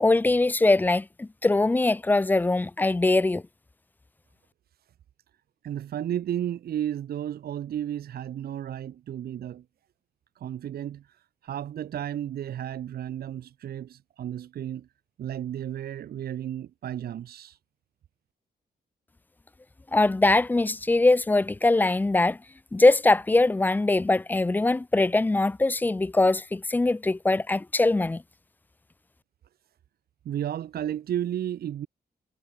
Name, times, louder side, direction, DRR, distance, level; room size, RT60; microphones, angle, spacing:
voice 1, 0.0-3.4 19.9-22.4 22.7-28.2, left 2 dB, 10° left, 0.3 m, -22 dB
voice 2, 5.6-9.6 10.4-14.9 15.2-17.6 30.2-31.9, right 10 dB, 70° right, 0.6 m, -33 dB
cardioid pair, 115°, 16 cm